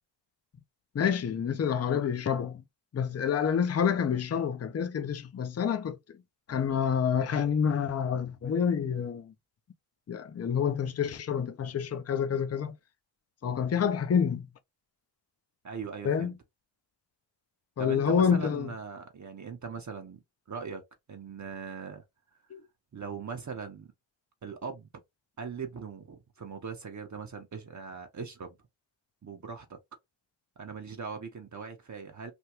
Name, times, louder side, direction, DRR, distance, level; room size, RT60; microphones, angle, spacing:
voice 1, 0.9-2.6 2.9-6.0 6.5-9.3 10.1-12.7 13.4-14.5 16.0-16.3 17.8-18.7 22.5-22.6, left 7 dB, 35° left, 0.5 m, -28 dB
voice 2, 15.6-16.3 17.8-20.8 21.1-22.0 22.9-23.9 24.4-24.9 25.4-28.5 29.2-29.8 30.6-32.3, right 5 dB, 40° right, 0.7 m, -40 dB
3.5 x 2.2 x 2.9 m
cardioid pair, 75°, 47 cm